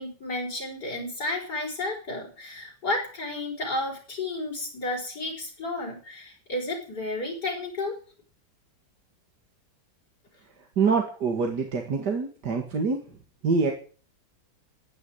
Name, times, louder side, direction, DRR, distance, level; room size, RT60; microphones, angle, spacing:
voice 1, 0.0-8.0, left 2 dB, 60° left, 0 dB, 5.6 m, -32 dB
voice 2, 10.8-13.0 13.4-13.7, right 5 dB, 65° right, 3 dB, 2.6 m, -25 dB
15.0 x 9.6 x 8.7 m, 0.41 s
omnidirectional pair, 2.0 m